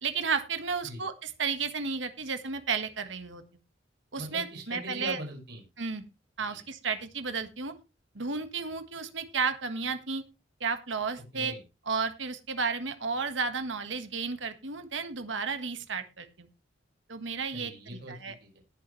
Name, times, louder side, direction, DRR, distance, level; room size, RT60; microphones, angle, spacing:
voice 1, 0.0-3.4 4.1-5.2 5.8-6.0 6.4-7.7 8.1-10.2 10.6-11.5 11.9-16.5 17.1-17.7 18.1-18.3, right 5 dB, 75° right, 8 dB, 1.6 m, -32 dB
voice 2, 4.2-5.6 6.5-6.6 11.3-11.6 17.5-18.1 18.4-18.6, right 1 dB, 55° right, 1 dB, 5.4 m, -41 dB
19.5 x 7.0 x 3.2 m, 0.27 s
head